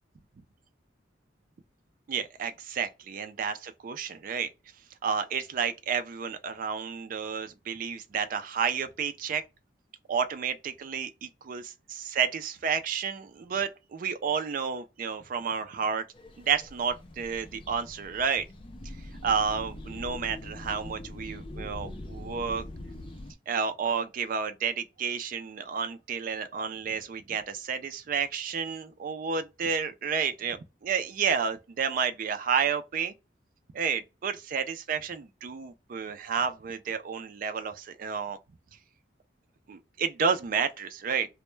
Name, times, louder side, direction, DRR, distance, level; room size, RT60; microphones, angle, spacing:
voice 1, 2.1-4.5 5.0-9.4 10.1-16.0 16.4-18.4 19.2-22.6 23.5-33.1 33.7-38.4 39.7-41.3, right 6 dB, 45° right, 0.3 m, -31 dB
sound 1, 16.1-23.3, left 1 dB, 30° left, 0.4 m, -43 dB
2.1 x 2.1 x 3.0 m
head